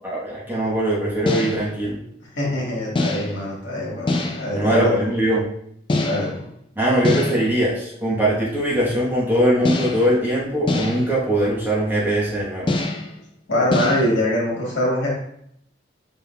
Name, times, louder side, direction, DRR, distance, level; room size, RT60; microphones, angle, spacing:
voice 1, 0.0-2.0 4.5-5.5 6.8-12.7, right 1 dB, 10° right, -6 dB, 1.0 m, -21 dB
sound 1, 1.3-1.8 3.0-3.5 4.1-4.6 5.9-6.5 7.0-7.6 9.6-10.2 10.7-11.2 12.7-13.2 13.7-14.1, left 2 dB, 25° left, 0.3 m, -24 dB
voice 2, 2.3-5.0 6.0-6.5 13.5-15.1, left 1 dB, 75° left, -4 dB, 1.5 m, -23 dB
5.3 x 3.7 x 2.2 m, 0.71 s
head